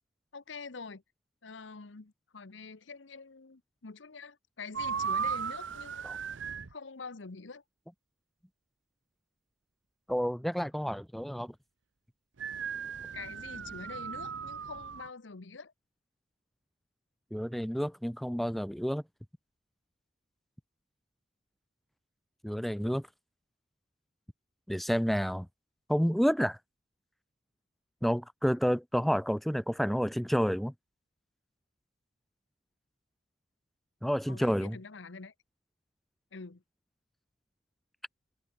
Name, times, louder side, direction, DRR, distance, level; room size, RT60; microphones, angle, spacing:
voice 1, 0.3-1.0 1.4-6.0 6.7-7.6 13.1-15.7 34.3-35.3 36.3-36.6, left 4 dB, 80° left, 1.0 m, -45 dB
sound 1, 4.7-6.7 12.4-15.1, right 6 dB, 90° right, 0.8 m, -36 dB
voice 2, 10.1-11.5 17.3-19.0 22.4-23.0 24.7-25.5 25.9-26.6 28.0-30.7 34.0-34.8, equal, ahead, 0.3 m, -29 dB
head